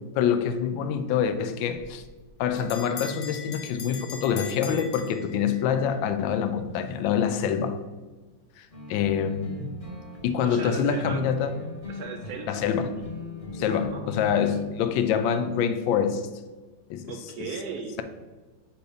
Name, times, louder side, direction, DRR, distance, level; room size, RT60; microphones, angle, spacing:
voice 1, 0.2-2.0 2.4-7.8 8.6-9.8 10.2-11.5 12.5-12.9 13.5-16.3 16.9-17.5, left 7 dB, 80° left, 1.3 m, -26 dB
Bell, 1.9-5.8, left 6 dB, 65° left, 0.6 m, -41 dB
sound 1, 8.7-14.7, left 3 dB, 20° left, 1.1 m, -40 dB
voice 2, 10.4-11.2 11.9-12.6 12.9-13.1 13.5-14.2 17.1-18.0, right 5 dB, 65° right, 1.0 m, -37 dB
5.1 x 4.6 x 4.9 m
omnidirectional pair, 2.1 m